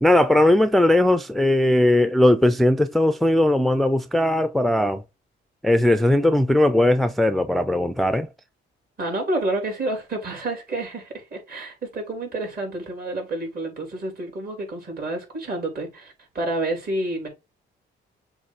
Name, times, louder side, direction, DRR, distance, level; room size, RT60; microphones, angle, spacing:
voice 1, 0.0-5.0 5.6-8.3, left 1 dB, ahead, 0.4 m, -19 dB
voice 2, 9.0-17.3, right 2 dB, 50° right, 4.0 m, -29 dB
6.9 x 3.1 x 4.8 m
cardioid pair, 90°, 20 cm